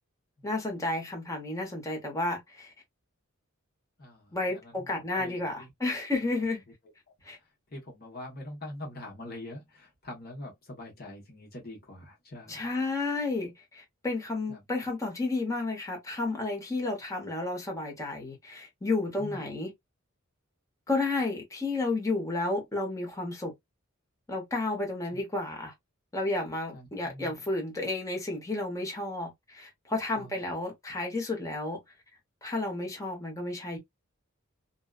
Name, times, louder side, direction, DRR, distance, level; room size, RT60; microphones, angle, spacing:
voice 1, 0.4-2.7 4.3-6.6 7.2-7.4 12.5-19.7 20.9-23.5 24.3-25.7 26.1-31.8 32.4-33.8, left 2 dB, 15° left, 1.0 m, -32 dB
voice 2, 4.0-4.9 5.1-5.7 6.1-6.4 7.7-12.7 14.5-14.6 19.2-19.5 25.1-25.2 26.7-27.3 30.2-30.5, left 1 dB, 45° left, 1.2 m, -44 dB
2.6 x 2.3 x 2.3 m
head